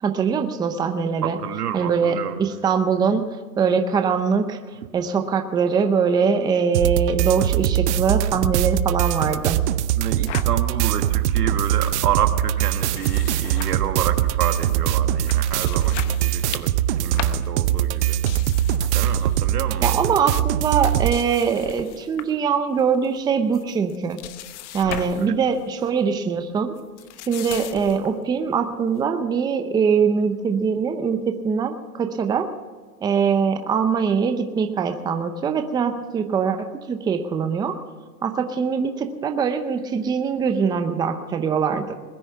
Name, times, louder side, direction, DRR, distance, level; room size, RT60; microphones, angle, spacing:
voice 1, 0.0-1.4 1.7-4.6 4.9-9.6 19.8-24.2 24.7-26.8 27.3-32.5 33.0-37.7 38.2-41.9, right 6 dB, 10° right, 7 dB, 0.7 m, -22 dB
voice 2, 1.2-2.4 10.0-16.7 17.0-18.2 18.9-19.9 24.8-25.3, right 9 dB, 90° right, 6 dB, 1.9 m, -29 dB
sound 1, 6.7-21.2, right 12 dB, 50° right, 0.7 m, -22 dB
sound 2, 10.2-10.5 11.0-11.1 11.3-11.7 12.7-14.3 14.7-14.8 15.2-19.4 19.7-20.0 20.7-22.4 22.8-23.2 23.5-25.3 25.6-25.8 26.8-28.2, left 12 dB, 50° left, 1.0 m, -38 dB
21.0 x 9.7 x 5.6 m, 1.4 s
hypercardioid pair, 140°, 45 cm